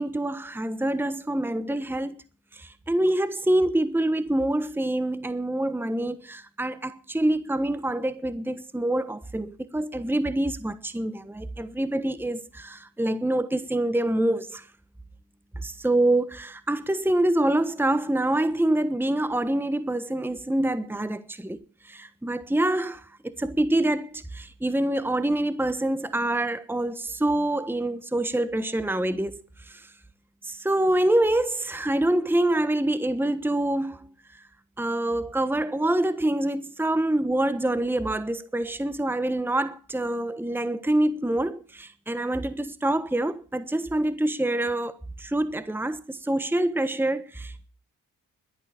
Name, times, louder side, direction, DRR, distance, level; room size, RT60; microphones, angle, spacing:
voice 1, 0.0-2.2 2.5-14.7 15.5-29.9 30.4-34.5 34.8-47.7, right 1 dB, 5° right, 1.3 m, -26 dB
12.0 x 11.0 x 8.6 m
supercardioid pair, 45°, 41 cm